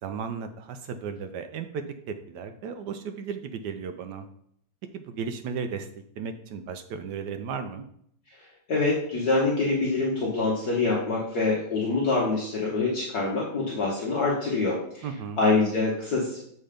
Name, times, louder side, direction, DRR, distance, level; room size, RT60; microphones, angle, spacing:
voice 1, 0.0-4.3 4.9-5.9 6.2-7.8 15.0-15.4, right 6 dB, 70° right, 8 dB, 1.0 m, -35 dB
voice 2, 8.7-15.1 15.4-16.4, left 3 dB, 55° left, -4 dB, 1.6 m, -25 dB
7.3 x 4.3 x 5.0 m, 0.69 s
omnidirectional pair, 2.2 m